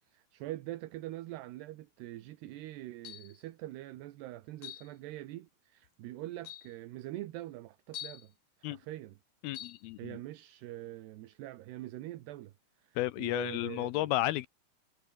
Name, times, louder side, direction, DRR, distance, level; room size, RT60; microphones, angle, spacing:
voice 1, 0.1-8.3 8.6-9.2 10.0-12.5 12.8-14.1, right 15 dB, 80° right, 3.3 m, -44 dB
sound 1, 3.1-3.4 4.6-4.9 5.8-5.9 6.4-6.7 7.9-8.3 9.5-9.8, left 11 dB, 60° left, 2.2 m, -45 dB
voice 2, 9.4-10.2 13.0-14.5, left 16 dB, 80° left, 2.4 m, -32 dB
omnidirectional pair, 4.8 m